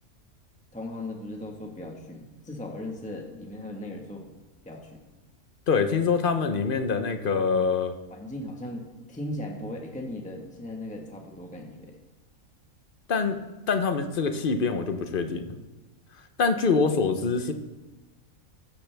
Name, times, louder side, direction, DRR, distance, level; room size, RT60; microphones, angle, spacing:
voice 1, 0.7-4.2 4.6-5.0 8.1-12.0, left 1 dB, 5° left, 1 dB, 1.3 m, -37 dB
voice 2, 5.7-8.0 13.1-13.4 13.7-15.6 16.4-17.5, left 5 dB, 45° left, 8 dB, 0.9 m, -25 dB
14.0 x 13.0 x 3.4 m, 1.1 s
omnidirectional pair, 1.5 m